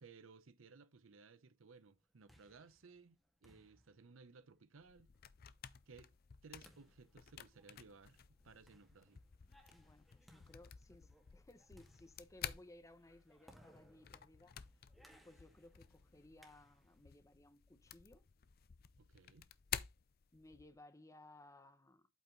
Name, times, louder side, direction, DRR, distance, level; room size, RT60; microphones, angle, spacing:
voice 1, 0.0-5.1 5.9-6.1 6.4-9.2 19.0-19.5, right 4 dB, 85° right, 0.7 m, -60 dB
sound 1, 1.9-17.1, equal, ahead, 1.8 m, -69 dB
sound 2, 4.8-20.8, left 9 dB, 50° left, 0.5 m, -52 dB
voice 2, 9.7-14.6 15.2-18.3 20.3-22.1, left 1 dB, 15° left, 0.8 m, -61 dB
8.3 x 4.5 x 3.8 m
head